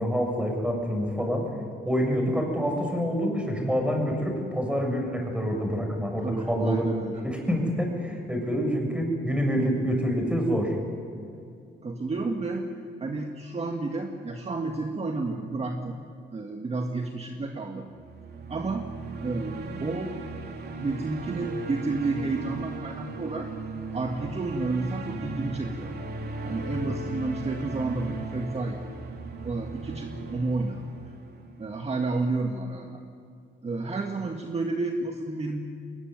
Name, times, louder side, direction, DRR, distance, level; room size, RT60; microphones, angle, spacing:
voice 1, 0.0-1.5 1.8-6.8 7.2-10.8 26.7-26.9, equal, 5° right, 2 dB, 7.1 m, -27 dB
voice 2, 6.2-7.2 11.8-12.7 13.0-16.0 16.3-17.9 18.5-18.9 19.2-20.2 20.8-23.6 23.9-25.9 26.4-28.8 29.4-31.0 31.6-33.0 33.6-35.6, right 3 dB, 30° right, 3 dB, 2.0 m, -31 dB
sound 1, 17.9-32.1, right 3 dB, 55° right, 3.5 m, -37 dB
22.0 x 20.5 x 9.5 m, 2.5 s
cardioid pair, 90°, 20 cm